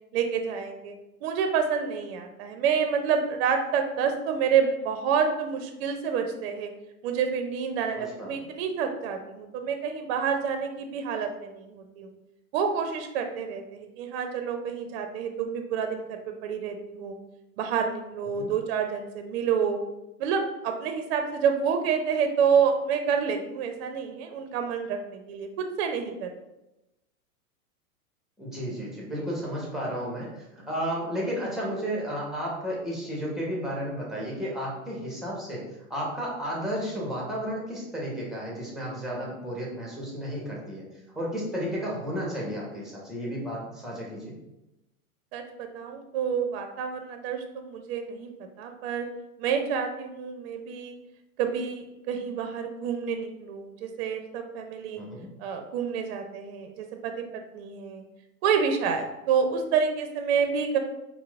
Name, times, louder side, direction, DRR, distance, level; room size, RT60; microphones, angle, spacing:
voice 1, 0.1-0.9 1.2-6.7 7.0-12.1 12.5-17.2 17.6-19.8 20.2-26.3 45.3-48.3 48.6-49.1 49.4-51.0 51.4-55.0 55.4-58.0 58.4-60.8, right 6 dB, 50° right, 5 dB, 0.5 m, -28 dB
voice 2, 7.9-8.4 18.4-18.5 28.4-30.3 30.7-35.6 35.9-40.8 41.2-44.3 55.0-55.3, equal, ahead, -4 dB, 0.6 m, -33 dB
4.4 x 2.0 x 2.2 m, 0.94 s
hypercardioid pair, 115°, 43 cm